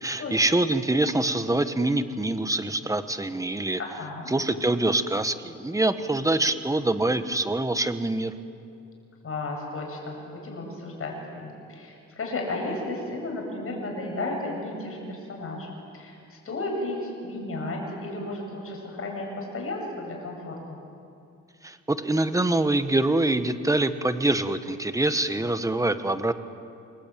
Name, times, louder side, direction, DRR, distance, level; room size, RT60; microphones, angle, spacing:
voice 1, 0.0-3.8 4.3-8.3 21.6-26.3, right 2 dB, 10° right, 10 dB, 1.3 m, -25 dB
voice 2, 3.8-4.3 9.2-20.8, left 2 dB, 50° left, 0 dB, 7.7 m, -34 dB
28.0 x 21.5 x 9.1 m, 2.5 s
cardioid pair, 125°, 29 cm